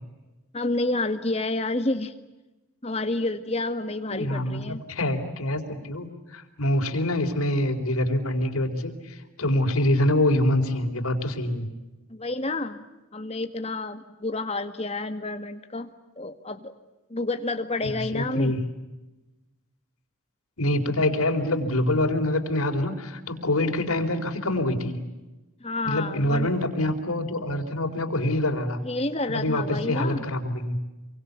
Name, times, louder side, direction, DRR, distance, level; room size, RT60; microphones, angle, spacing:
voice 1, 0.5-2.1 2.8-4.8 12.1-12.8 13.1-15.9 16.2-16.8 17.1-18.5 25.6-26.5 28.8-30.2, left 2 dB, 30° left, 8 dB, 1.8 m, -29 dB
voice 2, 4.1-11.7 17.8-18.7 20.6-25.0 25.8-28.8 29.3-30.8, left 1 dB, 90° left, 3 dB, 4.2 m, -25 dB
28.0 x 24.0 x 8.4 m, 1.1 s
head